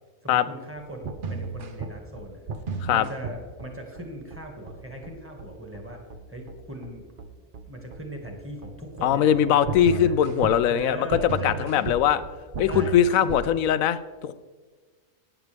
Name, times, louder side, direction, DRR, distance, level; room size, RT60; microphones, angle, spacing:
voice 1, 0.2-2.5 2.9-6.0 6.3-7.1 7.7-10.2 10.7-11.9 12.7-13.0, right 1 dB, 10° right, 2 dB, 1.8 m, -39 dB
sound 1, 0.8-13.5, right 4 dB, 50° right, 0.8 m, -34 dB
voice 2, 9.0-12.2 12.6-14.3, left 9 dB, 85° left, 14 dB, 1.0 m, -21 dB
13.0 x 9.9 x 3.5 m, 1.5 s
omnidirectional pair, 1.4 m